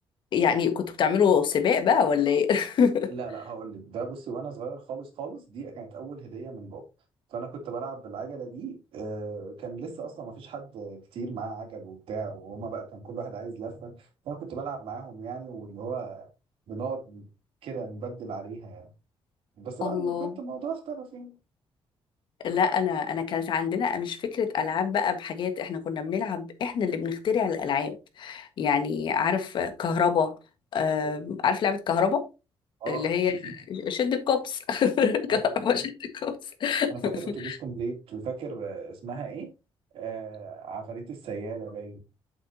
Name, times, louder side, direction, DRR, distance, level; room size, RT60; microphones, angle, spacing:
voice 1, 0.3-3.1 19.8-20.3 22.4-30.3 30.7-32.3 32.9-37.1 37.4-37.6, left 7 dB, 60° left, 1.6 m, -26 dB
voice 2, 3.1-6.8 7.3-16.3 16.7-17.3 17.6-18.9 19.6-21.4 32.8-33.5 35.3-35.7 36.9-39.5 39.9-42.0, right 5 dB, 80° right, 3.0 m, -37 dB
8.9 x 7.4 x 2.8 m
cardioid pair, 155°, 9 cm